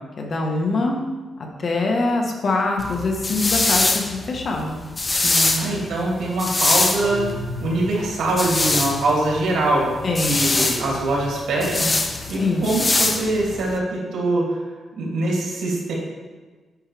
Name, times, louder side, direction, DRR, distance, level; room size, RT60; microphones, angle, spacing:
voice 1, 0.2-1.0 1.6-4.8 5.2-5.8 10.0-10.4 12.4-12.6, left 2 dB, 45° left, 1 dB, 1.3 m, -24 dB
sound 1, 2.8-13.8, left 2 dB, 25° left, 0.6 m, -23 dB
voice 2, 5.5-9.9 10.2-14.6 15.0-15.9, right 2 dB, 90° right, -3 dB, 2.5 m, -23 dB
sound 2, 7.0-8.4, left 1 dB, 10° right, 2.1 m, -33 dB
9.7 x 5.5 x 3.4 m, 1.4 s
cardioid pair, 130°, 0 cm